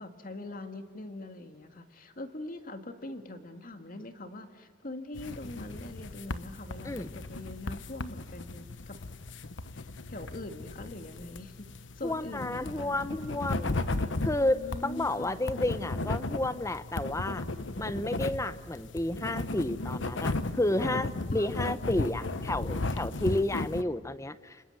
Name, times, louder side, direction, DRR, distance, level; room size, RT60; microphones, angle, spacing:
voice 1, 0.0-9.0 9.7-11.7 12.0-13.6 14.3-15.4 21.3-21.5, left 2 dB, 50° left, 7 dB, 2.0 m, -43 dB
sound 1, 5.2-23.8, left 2 dB, 80° left, 1.1 m, -35 dB
voice 2, 12.0-13.8 14.2-17.4 17.8-24.6, left 1 dB, 15° left, 13 dB, 0.8 m, -31 dB
29.0 x 26.0 x 7.9 m, 1.4 s
head